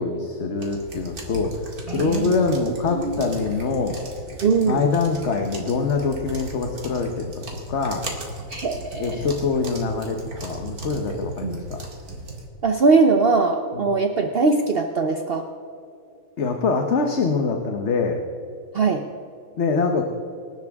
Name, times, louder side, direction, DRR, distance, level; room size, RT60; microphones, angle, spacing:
voice 1, 0.0-4.0 4.6-7.4 7.7-8.0 9.0-11.8 16.4-18.2 19.6-20.0, left 4 dB, 55° left, 4 dB, 1.3 m, -24 dB
sound 1, 0.6-12.5, right 2 dB, 85° right, 2.6 m, -36 dB
voice 2, 1.9-2.3 2.9-3.2 4.4-4.8 8.5-9.3 11.4-11.6 12.6-15.5 18.7-19.0, right 4 dB, 50° right, 5 dB, 0.9 m, -21 dB
25.5 x 12.0 x 3.6 m, 2.5 s
omnidirectional pair, 1.5 m